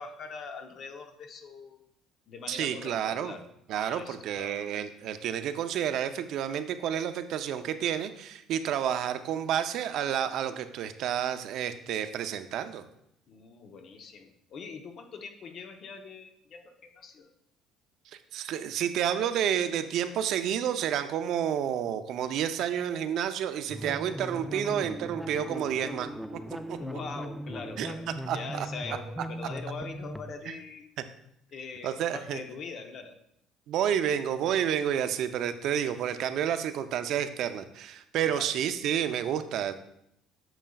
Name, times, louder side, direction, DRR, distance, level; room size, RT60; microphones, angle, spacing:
voice 1, 0.0-1.8 2.3-4.7 13.3-17.3 24.6-24.8 26.8-30.9 31.5-33.2 38.2-38.5, left 5 dB, 50° left, 6 dB, 0.8 m, -43 dB
voice 2, 2.5-3.3 3.7-12.8 18.3-26.1 26.7-26.8 27.8-27.9 28.3-28.7 31.8-32.4 33.7-39.7, right 9 dB, 65° right, 10 dB, 0.5 m, -30 dB
sound 1, 23.7-30.4, right 1 dB, ahead, 0.4 m, -39 dB
8.9 x 6.3 x 2.3 m, 0.74 s
cardioid pair, 100°, 0 cm